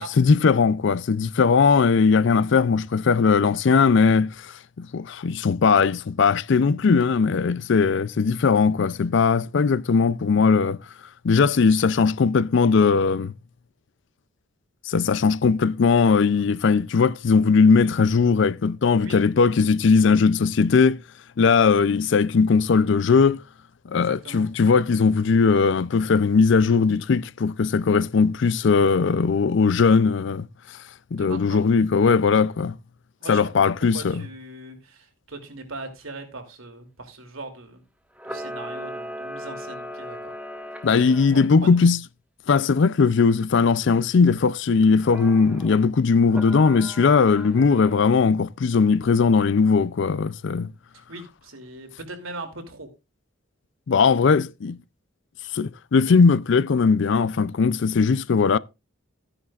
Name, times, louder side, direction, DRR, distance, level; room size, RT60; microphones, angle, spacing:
voice 1, 0.0-10.8 11.2-13.3 14.9-21.0 21.4-23.4 23.9-30.5 31.1-32.8 33.3-34.2 40.8-42.0 42.5-50.7 53.9-54.8 55.5-58.6, left 5 dB, 60° left, 0.4 m, -19 dB
voice 2, 24.0-24.5 31.2-31.6 33.2-37.8 38.2-40.3 41.3-41.9 50.9-52.9, right 2 dB, 80° right, 2.8 m, -40 dB
Camera, 38.1-41.5 45.0-45.8 46.3-48.1, equal, 5° right, 1.4 m, -37 dB
14.5 x 9.9 x 2.4 m
head